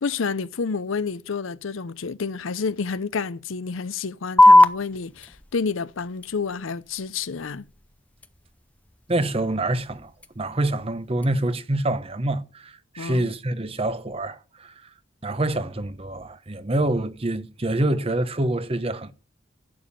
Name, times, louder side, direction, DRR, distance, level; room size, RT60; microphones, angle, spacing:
voice 1, 0.0-7.6 13.0-13.3, left 5 dB, 80° left, 0.6 m, -29 dB
sound 1, 4.4-11.4, left 1 dB, 5° left, 0.6 m, -23 dB
voice 2, 9.1-14.9 15.2-19.1, right 1 dB, 30° right, 0.8 m, -26 dB
11.5 x 7.1 x 8.5 m
head